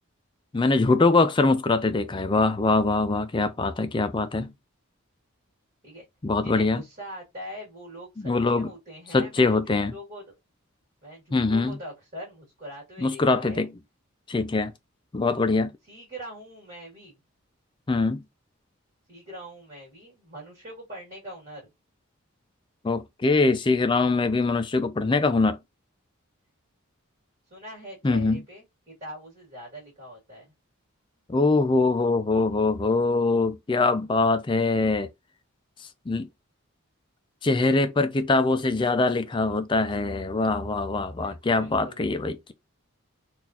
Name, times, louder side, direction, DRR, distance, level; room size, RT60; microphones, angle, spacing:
voice 1, 0.5-4.5 6.2-6.8 8.2-8.7 9.1-9.9 11.3-11.8 13.0-13.7 14.3-14.7 15.1-15.7 17.9-18.2 22.8-25.6 28.0-28.4 31.3-35.1 36.1-36.3 37.4-42.5, left 3 dB, 20° left, 0.3 m, -23 dB
voice 2, 6.4-10.3 11.0-13.7 15.8-17.2 19.1-21.7 27.5-30.5 41.2-42.0, equal, 40° right, 2.0 m, -42 dB
3.8 x 2.5 x 2.8 m
head